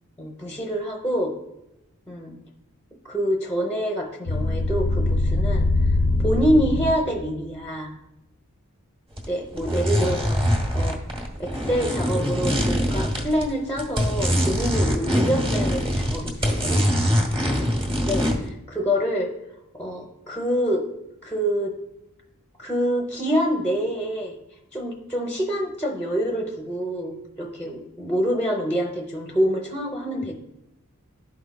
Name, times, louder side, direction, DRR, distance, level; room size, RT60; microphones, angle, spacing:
voice 1, 0.2-1.3 2.1-2.4 3.0-6.0 6.2-8.0 9.3-10.4 10.7-11.0 11.4-16.8 18.0-19.3 19.7-20.9 21.2-21.7 22.6-24.3 24.7-30.3, equal, 10° left, 0 dB, 0.7 m, -26 dB
sound 1, 4.3-7.3, left 2 dB, 65° left, 0.5 m, -22 dB
sound 2, 9.2-9.3 9.6-13.5 13.8-18.5, equal, 25° right, 1.1 m, -23 dB
12.0 x 4.6 x 2.2 m, 0.88 s
head